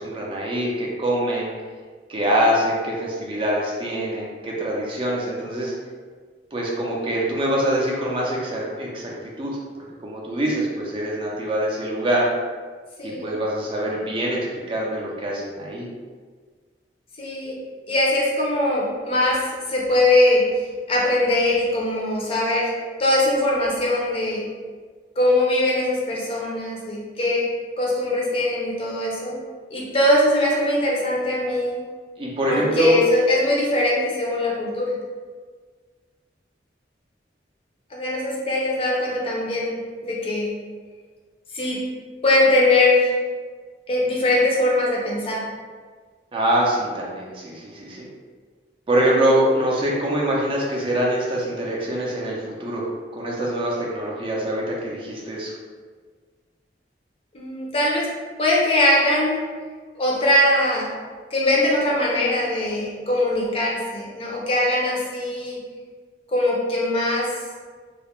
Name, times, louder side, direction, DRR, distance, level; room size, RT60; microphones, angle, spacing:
voice 1, 0.0-1.5 2.1-5.7 6.5-9.1 9.4-9.6 10.0-12.3 13.0-15.9 32.2-33.0 46.3-48.0 48.9-52.8 53.1-55.5, right 1 dB, 30° right, -4 dB, 0.4 m, -24 dB
voice 2, 17.2-17.6 17.9-19.4 19.7-20.6 20.9-22.7 23.0-24.4 25.2-27.5 27.8-29.4 29.7-31.8 32.5-35.0 37.9-40.5 41.5-41.8 42.2-43.1 43.9-45.4 57.3-58.1 58.4-59.4 60.0-60.9 61.3-65.6 66.3-67.3, left 1 dB, 30° left, -4 dB, 0.5 m, -21 dB
2.3 x 2.1 x 2.9 m, 1.5 s
head